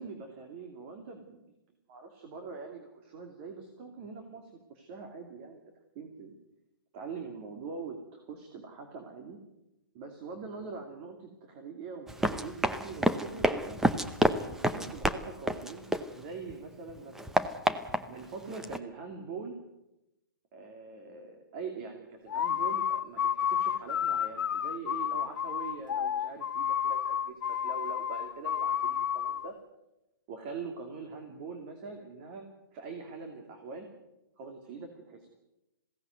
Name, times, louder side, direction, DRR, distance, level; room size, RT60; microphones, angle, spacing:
voice 1, 0.0-1.4 1.9-5.6 5.9-6.4 6.9-9.4 9.9-13.8 14.4-15.9 16.1-17.3 18.1-19.5 20.5-29.5 30.3-32.5 32.7-33.9 34.4-35.3, right 4 dB, 30° right, 4 dB, 2.7 m, -43 dB
Run, 12.1-16.5 16.9-18.8, right 1 dB, 5° right, 0.7 m, -30 dB
sound 1, 22.3-29.5, left 8 dB, 65° left, 1.0 m, -31 dB
21.0 x 17.0 x 9.5 m, 0.91 s
hypercardioid pair, 160°, 11 cm